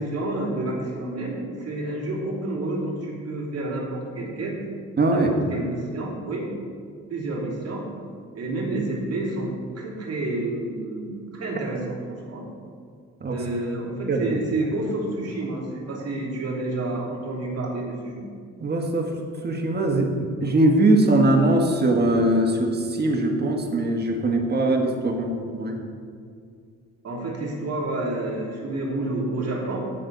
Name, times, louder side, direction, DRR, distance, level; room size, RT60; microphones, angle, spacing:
voice 1, 0.0-4.6 5.1-6.5 7.1-7.9 8.3-12.5 13.3-18.3 27.0-29.9, right 2 dB, 55° right, -2 dB, 3.0 m, -29 dB
voice 2, 5.0-5.3 13.2-13.4 14.1-14.3 18.6-19.1 19.4-25.7, right 1 dB, 35° right, 2 dB, 1.7 m, -21 dB
17.0 x 6.3 x 4.1 m, 2.2 s
cardioid pair, 90°, 30 cm